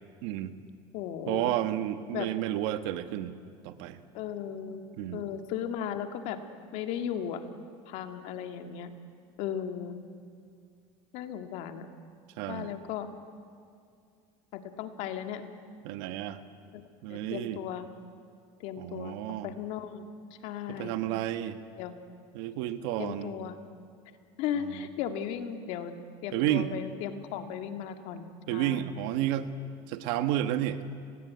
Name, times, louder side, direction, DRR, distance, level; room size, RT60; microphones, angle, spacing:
voice 1, 0.2-0.6 1.3-3.3 3.6-4.0 5.0-5.3 12.4-12.8 15.8-16.4 17.0-17.6 18.8-19.5 20.7-21.6 22.3-23.3 24.5-24.9 26.3-26.7 28.5-29.5 29.9-30.8, right 13 dB, 80° right, 10 dB, 1.5 m, -31 dB
voice 2, 0.9-1.5 2.1-2.3 4.1-4.8 5.1-6.4 6.7-7.5 7.9-8.9 9.4-10.0 11.1-11.9 12.5-13.1 14.5-15.4 16.7-16.8 17.1-17.9 18.6-19.1 19.4-20.0 20.4-21.0 21.8-21.9 23.0-23.6 24.4-26.0 26.2-28.3 28.5-28.8, left 9 dB, 60° left, 6 dB, 2.1 m, -36 dB
30.0 x 20.0 x 9.5 m, 2.3 s
cardioid pair, 165°, 13 cm